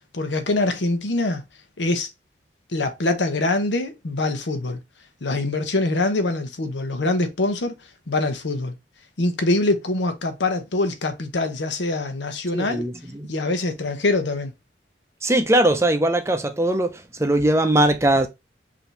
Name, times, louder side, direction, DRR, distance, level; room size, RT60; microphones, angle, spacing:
voice 1, 0.1-1.4 1.8-2.1 2.7-4.8 5.2-7.8 8.1-8.8 9.2-12.9 13.3-14.5, left 2 dB, 85° left, 0.9 m, -24 dB
voice 2, 12.5-13.3 15.2-18.3, right 1 dB, 15° right, 0.6 m, -20 dB
5.0 x 2.8 x 3.1 m
head